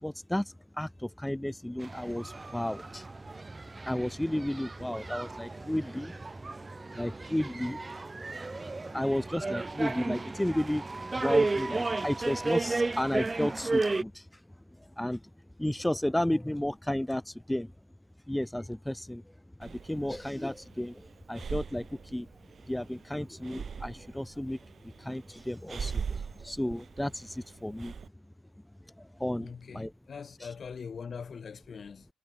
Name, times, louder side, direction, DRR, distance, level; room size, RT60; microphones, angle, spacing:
voice 1, 0.0-3.0 3.8-6.2 6.9-7.8 8.5-10.9 11.2-14.3 14.8-15.2 15.6-17.7 18.3-19.3 19.6-22.3 22.7-27.9 29.0-29.9, left 1 dB, 5° left, 0.6 m, -33 dB
sound 1, 1.8-14.0, right 3 dB, 15° right, 1.7 m, -33 dB
Breathing, 19.6-28.1, right 6 dB, 40° right, 0.7 m, -41 dB
voice 2, 29.4-32.1, left 6 dB, 35° left, 3.7 m, -42 dB
cardioid pair, 130°, 0 cm